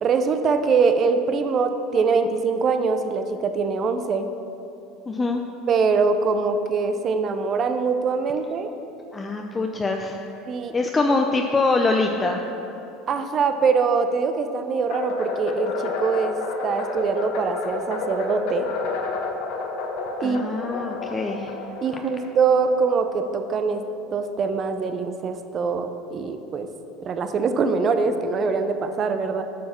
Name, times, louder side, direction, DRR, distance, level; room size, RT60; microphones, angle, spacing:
voice 1, 0.0-4.3 5.7-8.7 10.5-10.7 13.1-16.4 16.6-18.7 20.2-20.4 21.8-23.8 24.1-26.7 27.0-29.4, right 5 dB, 40° right, 8 dB, 0.6 m, -23 dB
voice 2, 5.1-5.4 9.1-10.2 10.7-12.5 20.2-21.5, left 3 dB, 20° left, 2 dB, 0.6 m, -24 dB
sound 1, 14.9-23.2, left 4 dB, 70° left, 1.1 m, -30 dB
8.6 x 5.6 x 5.8 m, 2.9 s
hypercardioid pair, 90°, 0 cm